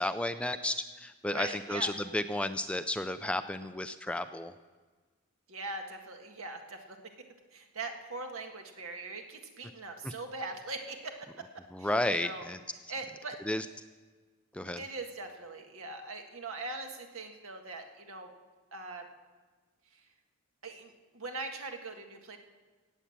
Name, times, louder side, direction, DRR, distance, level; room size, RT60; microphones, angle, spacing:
voice 1, 0.0-4.5 10.0-10.1 11.7-12.6 13.5-13.7 14.5-14.8, left 1 dB, 5° left, 10 dB, 0.3 m, -32 dB
voice 2, 1.3-1.9 5.5-7.1 7.5-11.4 11.8-12.4 12.9-13.4 14.8-18.3 18.7-19.0 20.6-22.4, right 3 dB, 70° right, 4 dB, 1.7 m, -41 dB
18.0 x 8.2 x 7.3 m, 1.4 s
head